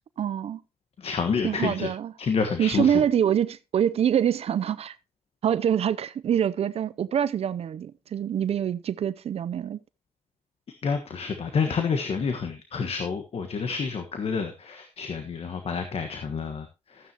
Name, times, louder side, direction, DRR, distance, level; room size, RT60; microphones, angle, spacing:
voice 1, 0.2-0.6 1.4-2.1 2.6-5.0 5.4-9.8, right 9 dB, 75° right, 0.5 m, -25 dB
voice 2, 1.0-1.9 2.2-3.0 10.8-17.1, left 5 dB, 70° left, 1.4 m, -29 dB
13.0 x 9.2 x 2.9 m
cardioid pair, 60°, 11 cm